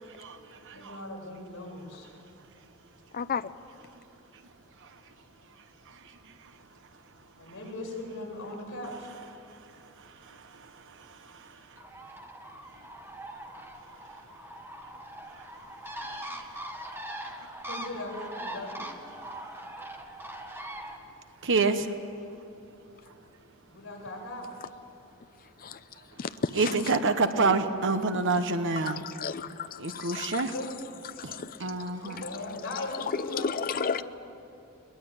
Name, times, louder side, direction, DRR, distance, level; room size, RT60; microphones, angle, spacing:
voice 1, 0.7-2.1 7.4-9.1 17.6-18.9 23.7-24.5 30.2-30.7 32.0-34.0, left 1 dB, 60° left, -2 dB, 7.2 m, -39 dB
voice 2, 3.1-3.5 25.6-25.8 26.2-26.9 27.4-27.5 28.8-30.5 31.2-31.9 32.5-32.6 33.1-34.0, left 5 dB, 40° left, 11 dB, 0.6 m, -33 dB
Bird, 11.8-21.0, right 1 dB, 10° right, 1.6 m, -41 dB
voice 3, 21.4-21.9 26.6-29.0 29.8-30.5 31.2-31.3 31.6-32.2, right 3 dB, 60° right, 9 dB, 1.1 m, -26 dB
22.0 x 20.5 x 8.9 m, 2.8 s
head